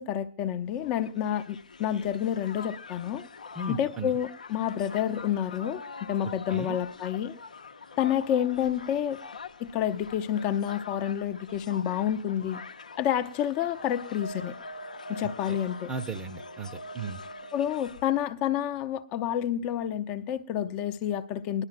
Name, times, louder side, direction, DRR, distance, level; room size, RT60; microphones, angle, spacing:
voice 1, 0.0-3.2 3.7-7.3 8.0-9.2 9.6-12.6 13.0-14.5 15.1-15.9 17.5-21.6, left 10 dB, 35° left, 0.5 m, -29 dB
Crowd, 0.8-18.2, left 3 dB, 80° left, 0.6 m, -44 dB
voice 2, 3.5-4.1 6.2-6.8 15.2-15.6 15.9-17.2, right 3 dB, 15° right, 0.7 m, -36 dB
20.0 x 11.5 x 2.5 m
figure-of-eight pair, 115°, 4 cm